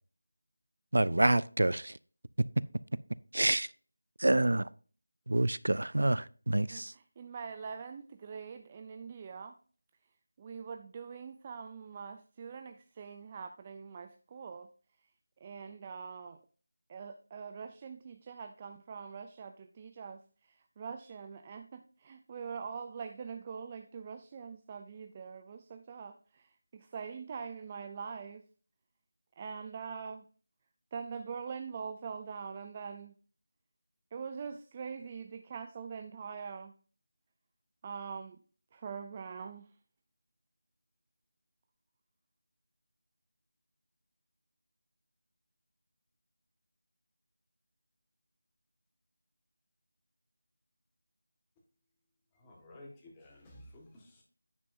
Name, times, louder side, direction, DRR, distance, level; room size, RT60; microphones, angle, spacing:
voice 1, 0.9-2.0 3.3-3.7 4.2-4.7 5.3-6.9, right 1 dB, 80° right, 0.4 m, -27 dB
voice 2, 6.7-9.5 10.4-14.7 15.4-16.4 16.9-28.4 29.4-30.2 30.9-33.1 34.1-36.7 37.8-38.4 38.7-39.7, right 6 dB, 20° right, 0.4 m, -43 dB
voice 3, 52.3-54.2, left 1 dB, 10° left, 1.6 m, -53 dB
9.7 x 7.5 x 2.7 m
figure-of-eight pair, 170°, 0 cm